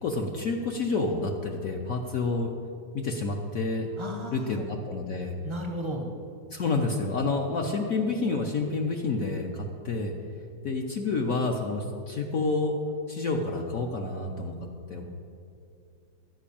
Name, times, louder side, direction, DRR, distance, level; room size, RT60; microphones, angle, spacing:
voice 1, 0.0-2.5 2.9-3.9 4.3-5.4 6.5-10.1 10.6-12.7 13.1-14.5 14.9-15.0, left 3 dB, 60° left, 2 dB, 0.9 m, -29 dB
voice 2, 4.0-4.6 5.4-6.1, equal, 30° right, 1 dB, 0.5 m, -34 dB
11.5 x 5.2 x 8.5 m, 2.5 s
omnidirectional pair, 2.1 m